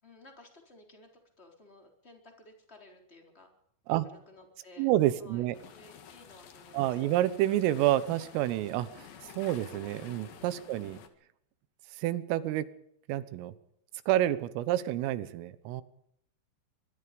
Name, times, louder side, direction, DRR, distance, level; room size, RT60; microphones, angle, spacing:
voice 1, 0.0-1.1 1.4-3.5 3.9-4.9 5.2-7.0, left 2 dB, 15° left, 2 dB, 3.5 m, -55 dB
voice 2, 4.8-5.6 6.7-11.0 12.0-12.7 13.1-13.5 14.1-15.8, right 14 dB, 85° right, 14 dB, 3.7 m, -29 dB
sound 1, 5.5-11.1, left 8 dB, 60° left, 2.9 m, -50 dB
24.0 x 22.5 x 5.2 m, 0.74 s
omnidirectional pair, 5.8 m